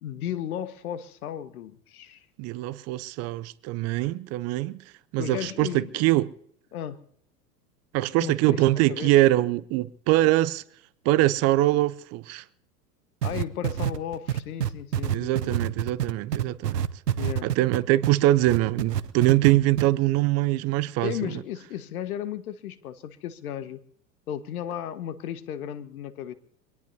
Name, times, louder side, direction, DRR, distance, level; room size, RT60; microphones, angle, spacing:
voice 1, 0.0-2.2 5.2-6.0 6.7-7.0 8.2-8.6 8.9-9.1 13.2-15.6 17.2-17.5 21.0-23.8 24.3-26.3, left 10 dB, 65° left, 1.6 m, -34 dB
voice 2, 2.4-4.8 5.1-6.3 7.9-10.6 11.0-12.4 15.1-16.9 17.4-21.3, right 16 dB, 35° right, 0.6 m, -23 dB
sound 1, 13.2-18.1 18.5-19.5 19.8-19.9, right 10 dB, 85° right, 0.8 m, -26 dB
25.0 x 18.0 x 2.8 m
figure-of-eight pair, 90°, 47 cm